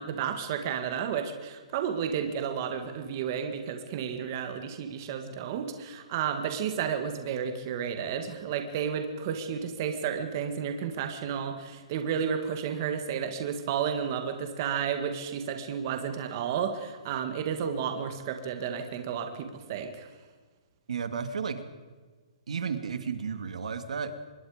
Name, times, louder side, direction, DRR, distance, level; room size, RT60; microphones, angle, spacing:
voice 1, 0.0-20.1, right 7 dB, 30° right, 6 dB, 1.9 m, -32 dB
voice 2, 20.9-21.6 22.5-24.1, right 6 dB, 80° right, 9 dB, 2.2 m, -33 dB
25.0 x 21.5 x 5.1 m, 1.4 s
hypercardioid pair, 175°, 4 cm